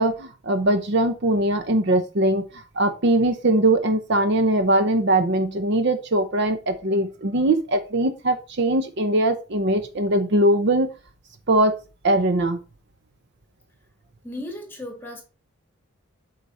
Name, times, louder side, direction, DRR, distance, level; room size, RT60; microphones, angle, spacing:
voice 1, 0.0-2.5 2.8-10.9 11.5-11.7 12.0-12.6, right 1 dB, 55° right, 0.7 m, -21 dB
voice 2, 14.2-15.2, left 1 dB, 10° left, 1.7 m, -35 dB
8.1 x 4.0 x 4.2 m
head